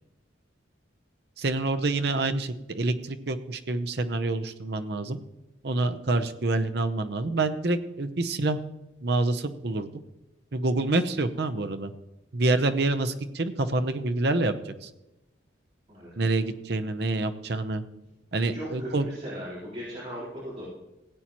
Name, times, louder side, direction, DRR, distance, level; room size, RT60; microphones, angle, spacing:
voice 1, 1.4-5.2 5.6-8.6 9.0-9.9 10.5-11.9 12.3-14.9 16.2-17.8 18.3-19.1, right 2 dB, 55° right, 9 dB, 0.7 m, -27 dB
voice 2, 15.9-16.4 18.4-20.6, equal, 35° right, -10 dB, 4.1 m, -38 dB
17.0 x 8.6 x 3.0 m, 0.96 s
head